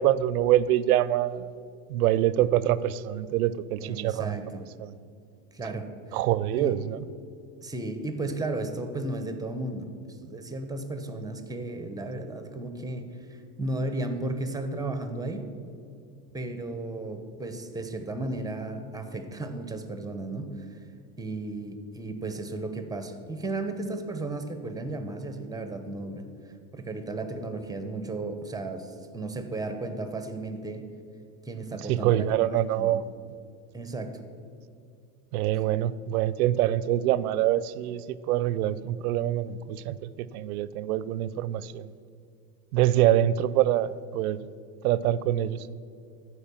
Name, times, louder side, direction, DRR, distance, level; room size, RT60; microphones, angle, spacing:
voice 1, 0.0-1.5 1.9-4.3 4.8-4.9 6.1-7.0 31.9-33.1 35.3-41.9 42.7-44.5 44.8-45.7, right 12 dB, 85° right, 18 dB, 0.6 m, -25 dB
voice 2, 3.8-4.6 5.5-6.2 6.5-6.8 7.6-15.5 16.3-20.7 21.2-26.3 26.7-30.9 31.4-32.4 32.7-33.0 33.7-34.2, right 2 dB, 10° right, 8 dB, 1.0 m, -34 dB
13.5 x 4.8 x 7.1 m, 2.4 s
supercardioid pair, 110°, 42 cm